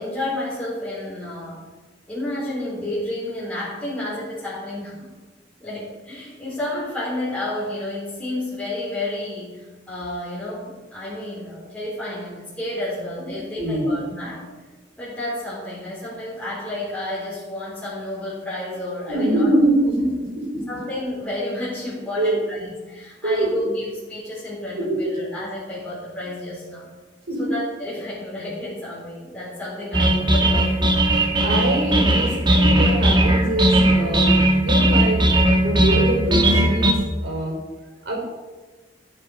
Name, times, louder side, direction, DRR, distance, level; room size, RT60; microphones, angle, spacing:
voice 1, 0.0-1.6 2.1-5.1 5.6-14.5 15.0-19.5 20.7-26.9 27.4-31.1, left 1 dB, 5° left, -10 dB, 3.9 m, -31 dB
voice 2, 13.2-14.0 19.1-20.6 22.2-22.4 23.2-23.5 24.8-25.1 27.3-27.5 31.4-35.3 35.5-37.6 38.1-38.2, right 1 dB, 75° right, 0 dB, 4.1 m, -23 dB
sound 1, 29.9-36.9, right 1 dB, 25° right, 1.3 m, -18 dB
15.0 x 7.4 x 5.3 m, 1.3 s
head